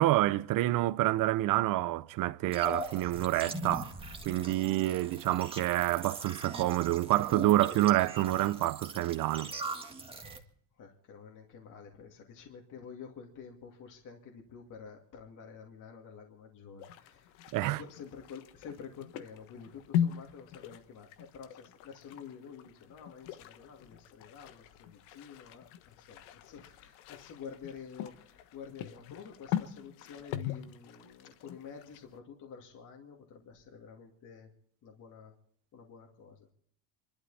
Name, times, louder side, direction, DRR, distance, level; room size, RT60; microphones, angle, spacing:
voice 1, 0.0-3.9 4.2-9.5 17.5-17.8, right 15 dB, 45° right, 0.7 m, -28 dB
sound 1, 2.5-10.4, right 2 dB, 10° right, 1.8 m, -41 dB
voice 2, 10.8-17.3 17.6-34.5 34.8-35.3 35.7-36.5, left 6 dB, 40° left, 2.5 m, -49 dB
sound 2, 16.8-32.2, left 10 dB, 90° left, 1.4 m, -40 dB
27.0 x 12.0 x 4.2 m
cardioid pair, 150°, 48 cm